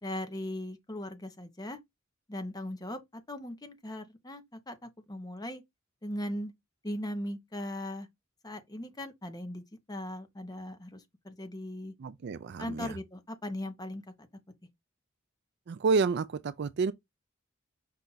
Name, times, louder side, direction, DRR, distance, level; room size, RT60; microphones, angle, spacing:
voice 1, 0.0-1.8 2.3-5.6 6.0-6.5 6.8-8.1 8.4-11.9 12.6-14.3, left 1 dB, 20° left, 0.8 m, -39 dB
voice 2, 12.0-13.0 15.7-16.9, right 4 dB, 55° right, 0.4 m, -29 dB
5.5 x 2.4 x 3.9 m
head